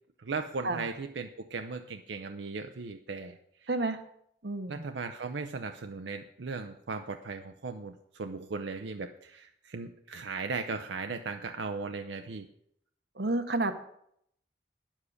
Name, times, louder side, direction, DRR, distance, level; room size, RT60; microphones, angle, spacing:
voice 1, 0.2-3.3 3.6-3.7 4.7-12.5, right 4 dB, 90° right, 6 dB, 0.6 m, -37 dB
voice 2, 3.7-4.0 4.4-4.8 13.2-13.7, right 2 dB, 70° right, 9 dB, 1.0 m, -30 dB
9.9 x 7.3 x 6.4 m, 0.72 s
head